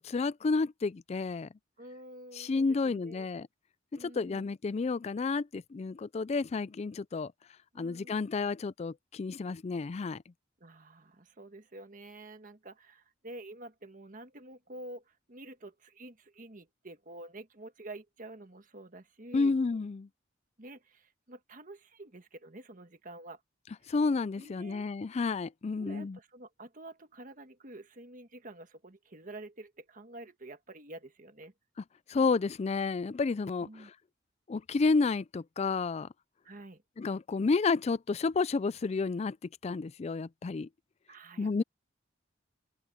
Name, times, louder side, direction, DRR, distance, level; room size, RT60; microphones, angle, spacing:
voice 1, 0.0-1.5 2.4-3.5 3.9-7.3 7.8-10.2 19.3-20.1 23.9-26.2 32.1-33.9 34.5-36.1 37.0-40.7 41.4-41.6, left 4 dB, 35° left, 0.3 m, -31 dB
voice 2, 1.8-3.3 3.9-4.5 7.7-8.2 10.6-19.6 20.6-23.4 24.4-24.9 25.8-31.5 33.6-33.9 36.4-36.8 41.1-41.5, right 2 dB, 45° right, 1.6 m, -48 dB
head